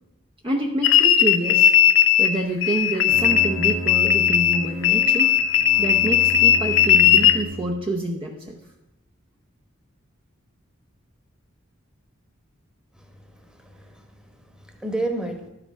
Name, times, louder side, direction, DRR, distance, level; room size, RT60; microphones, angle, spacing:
voice 1, 0.4-1.7 2.2-5.3 5.8-8.6, right 1 dB, 25° right, 1 dB, 0.8 m, -27 dB
sound 1, 0.8-2.4 2.6-7.4, left 10 dB, 70° left, 0.6 m, -17 dB
Bowed string instrument, 2.9-7.9, equal, 80° right, 1.5 m, -34 dB
voice 2, 12.9-15.5, right 2 dB, 5° right, 4 dB, 1.2 m, -32 dB
12.0 x 5.8 x 5.2 m, 0.90 s
head